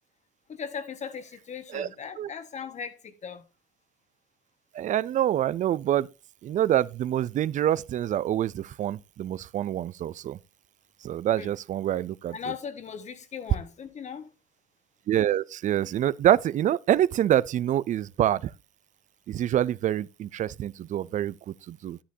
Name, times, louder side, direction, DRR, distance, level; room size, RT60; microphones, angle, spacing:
voice 1, 0.5-3.4 11.4-11.5 12.3-14.3, left 7 dB, 45° left, 1.5 m, -38 dB
voice 2, 4.7-6.1 6.4-10.4 11.0-12.4 15.1-18.5 19.3-22.0, right 11 dB, 45° right, 0.4 m, -26 dB
11.0 x 10.0 x 2.7 m
cardioid pair, 110°, 17 cm